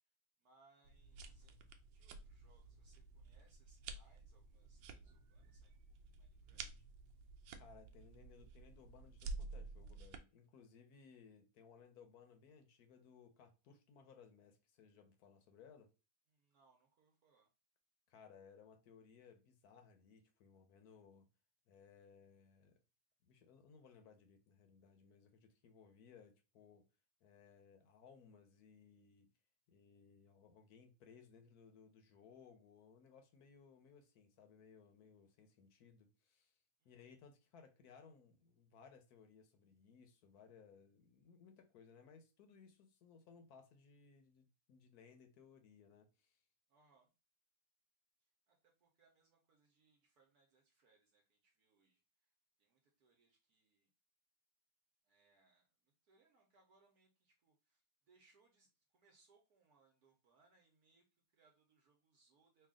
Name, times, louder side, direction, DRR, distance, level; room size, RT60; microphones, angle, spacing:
voice 1, 0.4-1.6 1.9-5.8 6.1-6.8 16.3-17.5 36.8-37.2 46.7-47.1 48.2-52.3 52.6-53.9 55.0-62.7, right 3 dB, 65° right, 1.2 m, -74 dB
sound 1, 0.8-10.2, right 3 dB, 85° right, 1.3 m, -52 dB
voice 2, 7.6-15.9 18.1-21.3 21.7-22.8 23.2-26.9 27.2-29.3 29.7-36.6 36.8-46.4, left 6 dB, 65° left, 1.1 m, -63 dB
3.4 x 2.4 x 3.5 m
omnidirectional pair, 1.9 m